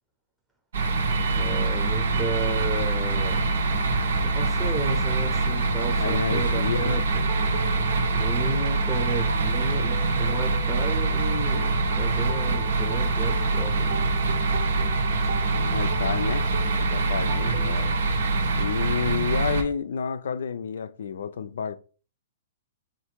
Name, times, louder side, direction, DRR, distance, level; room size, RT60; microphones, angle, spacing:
sound 1, 0.7-19.6, right 3 dB, 80° right, 0.9 m, -24 dB
voice 1, 1.3-3.5 4.1-7.2 8.1-11.7 12.0-14.0 17.4-17.8, right 3 dB, 5° right, 0.7 m, -34 dB
voice 2, 6.0-7.1 15.5-16.5 16.8-17.9 18.6-21.8, left 7 dB, 80° left, 0.4 m, -30 dB
sound 2, 7.1-18.1, right 5 dB, 55° right, 0.7 m, -40 dB
3.6 x 2.5 x 4.5 m
hypercardioid pair, 155°, 0 cm